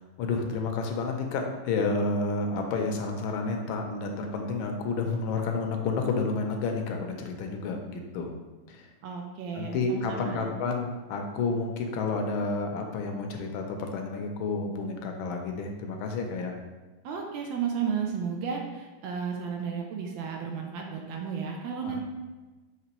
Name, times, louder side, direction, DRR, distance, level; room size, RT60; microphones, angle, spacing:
voice 1, 0.0-8.3 8.7-8.9 9.5-16.6 21.8-22.0, left 3 dB, 85° left, 3 dB, 1.4 m, -30 dB
voice 2, 9.0-10.5 17.0-22.0, right 6 dB, 80° right, 1 dB, 1.3 m, -33 dB
5.9 x 3.0 x 2.9 m, 1.2 s
omnidirectional pair, 2.2 m